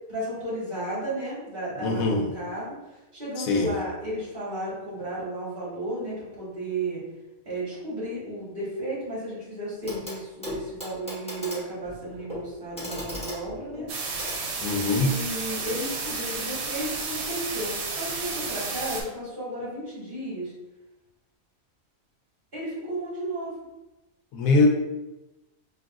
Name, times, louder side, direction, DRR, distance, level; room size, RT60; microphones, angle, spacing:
voice 1, 0.1-2.7 3.1-7.0 7.5-14.2 14.9-20.5 22.5-23.5, right 1 dB, 40° right, -9 dB, 1.8 m, -33 dB
voice 2, 1.8-2.4 3.4-3.8 14.6-15.1 24.3-24.7, left 3 dB, 85° left, 1 dB, 1.1 m, -23 dB
Clock, 9.8-10.2 10.4-15.1 16.4-16.5, equal, 5° left, 1.2 m, -38 dB
sound 1, 13.9-19.0, right 4 dB, 80° right, 1.1 m, -32 dB
4.7 x 2.8 x 2.4 m, 1.0 s
omnidirectional pair, 1.4 m